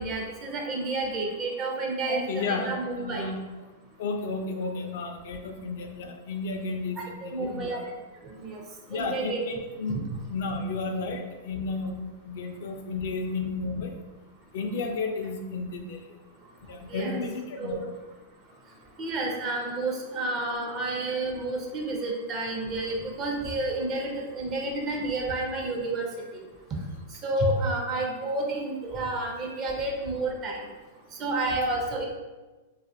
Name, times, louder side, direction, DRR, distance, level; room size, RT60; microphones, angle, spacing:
voice 1, 0.0-3.3 7.0-7.8 8.2-8.6 8.9-9.4 9.9-10.2 16.9-17.2 17.6-17.8 19.0-26.1 26.3-26.4 27.2-30.7 31.2-32.1, right 2 dB, 35° right, 0 dB, 0.6 m, -30 dB
voice 2, 2.1-2.7 3.0-3.4 4.0-7.8 8.9-10.0 10.3-14.0 14.5-16.1 16.7-17.9, left 3 dB, 65° left, 4 dB, 0.3 m, -32 dB
2.5 x 2.4 x 2.5 m, 1.2 s
hypercardioid pair, 125°, 0 cm